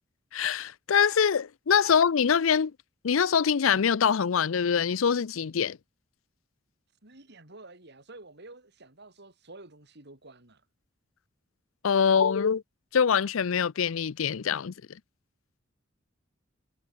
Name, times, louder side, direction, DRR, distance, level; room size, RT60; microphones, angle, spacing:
voice 1, 0.3-2.7 3.0-5.8 11.8-12.6 12.9-14.7, left 7 dB, 85° left, 0.5 m, -24 dB
voice 2, 7.0-10.6, right 2 dB, 60° right, 4.7 m, -50 dB
head